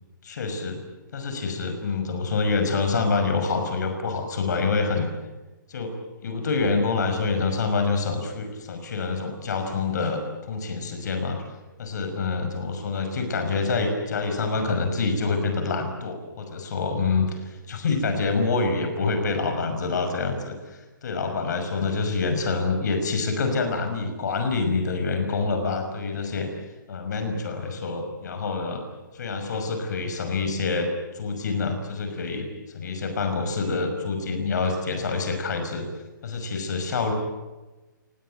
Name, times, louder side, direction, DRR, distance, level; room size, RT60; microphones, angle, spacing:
voice 1, 0.2-0.8 1.1-5.1 5.7-5.9 6.2-11.4 11.8-26.5 26.9-28.8 29.1-30.9 31.1-32.5 32.7-35.9 36.2-37.1, left 4 dB, 60° left, 5 dB, 6.0 m, -26 dB
29.5 x 19.5 x 9.2 m, 1.2 s
hypercardioid pair, 150°, 11 cm